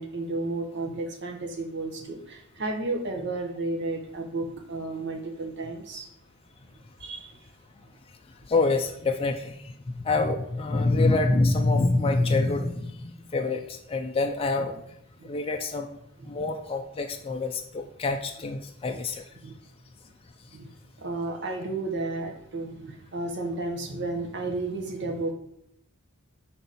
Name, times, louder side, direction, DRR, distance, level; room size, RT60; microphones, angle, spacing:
voice 1, 0.0-6.1 7.0-7.4 15.2-15.3 16.2-16.3 19.4-19.5 20.5-20.7 21.0-25.3, right 2 dB, 55° right, 4 dB, 1.0 m, -32 dB
voice 2, 8.5-14.8 15.2-15.9 16.3-19.2, left 3 dB, 25° left, 3 dB, 0.4 m, -26 dB
5.9 x 3.9 x 4.0 m, 0.79 s
head